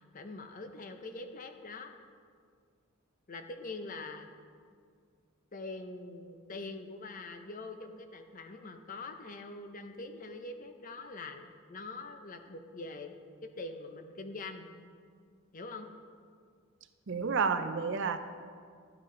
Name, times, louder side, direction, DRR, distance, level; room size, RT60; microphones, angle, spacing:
voice 1, 0.0-1.9 3.3-4.3 5.5-13.1 13.4-14.7 15.5-15.9, left 3 dB, 40° left, 6 dB, 0.6 m, -44 dB
voice 2, 17.1-18.2, right 5 dB, 60° right, 9 dB, 0.5 m, -30 dB
11.5 x 7.9 x 3.8 m, 2.1 s
head